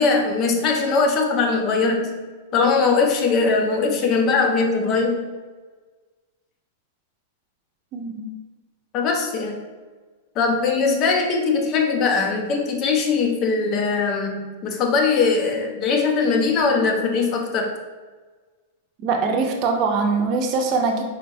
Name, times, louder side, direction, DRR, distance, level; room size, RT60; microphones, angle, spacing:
voice 1, 0.0-2.2 2.5-5.3 8.9-9.6 10.4-17.7, left 4 dB, 35° left, 3 dB, 0.7 m, -21 dB
voice 2, 7.9-8.3 19.0-21.0, right 4 dB, 40° right, 2 dB, 0.7 m, -22 dB
5.0 x 3.4 x 2.7 m, 1.4 s
hypercardioid pair, 140°, 0 cm